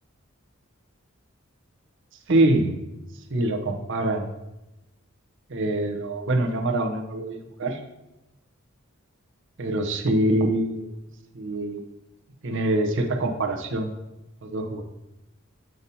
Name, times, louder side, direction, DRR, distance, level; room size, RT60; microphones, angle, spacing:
voice 1, 2.3-2.7 3.3-4.3 5.5-7.8 9.6-10.9 11.3-11.9 12.4-13.9 14.4-14.8, right 1 dB, 60° right, 4 dB, 0.8 m, -24 dB
7.8 x 2.8 x 5.3 m, 0.99 s
head